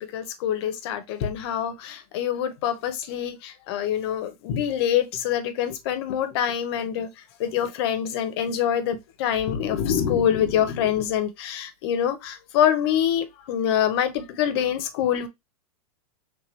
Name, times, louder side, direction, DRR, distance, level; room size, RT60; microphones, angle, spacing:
voice 1, 0.0-7.1 7.4-15.3, left 9 dB, 40° left, 0.7 m, -25 dB
3.2 x 3.0 x 3.0 m
supercardioid pair, 165°, 20 cm